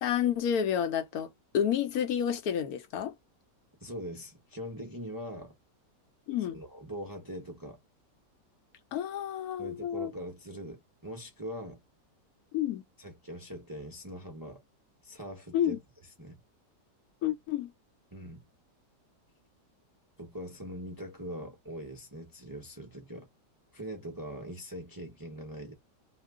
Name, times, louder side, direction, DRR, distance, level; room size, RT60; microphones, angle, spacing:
voice 1, 0.0-3.1 6.3-6.6 8.9-10.1 12.5-12.8 15.5-15.8 17.2-17.7, left 9 dB, 70° left, 1.0 m, -30 dB
voice 2, 3.8-5.5 6.5-7.8 9.6-11.8 13.0-14.6 15.0-15.8 16.2-16.4 18.1-18.4 20.2-23.3 23.7-25.7, equal, 30° right, 0.4 m, -42 dB
2.9 x 2.1 x 3.5 m
omnidirectional pair, 1.9 m